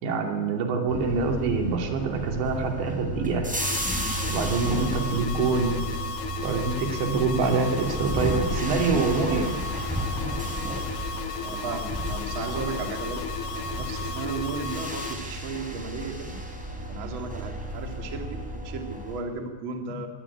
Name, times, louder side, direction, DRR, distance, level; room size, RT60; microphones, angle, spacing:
voice 1, 0.0-3.5 4.3-5.8 6.4-9.6, right 4 dB, 75° right, 3 dB, 5.0 m, -25 dB
sound 1, 0.9-19.2, equal, ahead, 3.2 m, -33 dB
sound 2, 3.6-15.2, left 4 dB, 55° left, 1.6 m, -35 dB
voice 2, 11.4-13.2 13.7-16.4 16.9-20.1, right 4 dB, 40° right, 5 dB, 2.0 m, -35 dB
21.5 x 18.0 x 10.0 m, 1.4 s
omnidirectional pair, 5.2 m